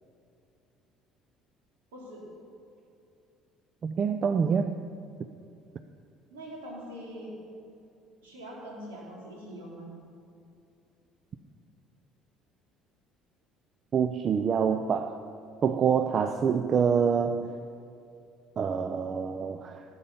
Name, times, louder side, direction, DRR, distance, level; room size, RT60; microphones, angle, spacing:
voice 1, 1.9-2.2 6.3-7.3 8.2-9.8, equal, 75° right, -3 dB, 3.4 m, -43 dB
voice 2, 3.8-4.8 13.9-15.2 15.6-17.5 18.6-19.8, right 6 dB, 45° right, 9 dB, 0.6 m, -26 dB
17.0 x 8.0 x 5.7 m, 2.6 s
figure-of-eight pair, 55°, 0 cm